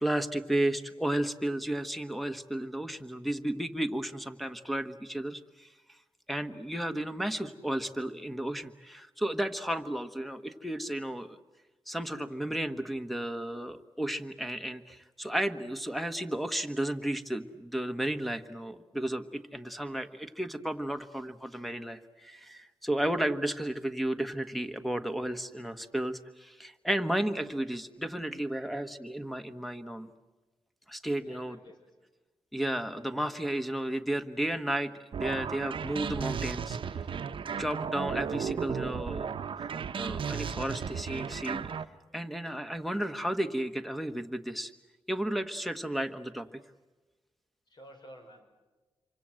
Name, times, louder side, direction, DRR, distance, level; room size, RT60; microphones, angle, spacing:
voice 1, 0.0-5.7 6.3-11.4 11.9-30.1 30.9-31.6 32.5-36.8 37.6-39.3 40.0-41.7 42.1-44.7 45.1-46.5, right 1 dB, ahead, 9 dB, 1.3 m, -33 dB
voice 2, 28.6-29.0 31.2-32.1 47.7-48.4, equal, 50° left, 4 dB, 5.8 m, -54 dB
sound 1, 35.1-41.9, right 6 dB, 65° right, 1.0 m, -35 dB
27.0 x 25.0 x 7.7 m, 1.2 s
wide cardioid pair, 105°, 9 cm